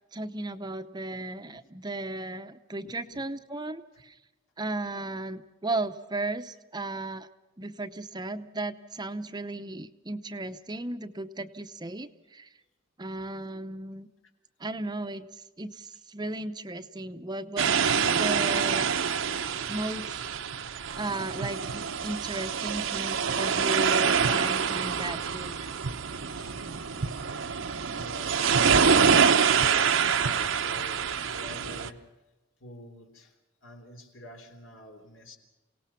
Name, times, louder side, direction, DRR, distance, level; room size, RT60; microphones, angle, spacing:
voice 1, 0.1-4.2 4.6-7.3 7.6-12.5 13.0-14.1 14.6-17.7 18.2-18.9 19.7-20.2 21.0-25.7, right 2 dB, 20° right, 10 dB, 0.8 m, -35 dB
voice 2, 2.8-3.2 26.3-27.6 27.9-32.1 32.6-35.4, left 1 dB, 75° left, 4 dB, 3.5 m, -48 dB
sound 1, 17.6-31.9, right 6 dB, 80° right, 0.9 m, -26 dB
28.0 x 18.0 x 5.8 m, 1.1 s
head